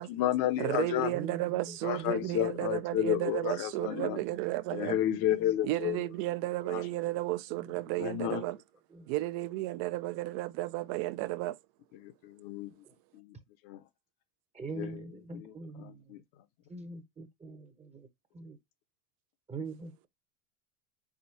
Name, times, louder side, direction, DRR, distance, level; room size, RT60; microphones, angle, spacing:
voice 1, 0.0-1.1 1.8-4.2 4.7-6.0 6.7-6.8 8.0-8.4 12.0-12.7 13.1-13.4 13.6-13.8 14.7-15.0 15.3-15.5 15.8-16.2, left 12 dB, 50° left, 0.9 m, -31 dB
voice 2, 0.6-5.0 5.6-8.6 9.1-11.6, right 17 dB, 55° right, 0.6 m, -33 dB
voice 3, 1.1-1.8 2.2-2.5 5.2-5.5 5.8-6.0 7.6-7.7 8.9-9.1 12.8-12.9 14.5-16.1 16.7-18.1 18.3-18.6 19.5-20.1, right 3 dB, 15° right, 0.8 m, -44 dB
4.1 x 3.7 x 2.6 m
hypercardioid pair, 85°, 42 cm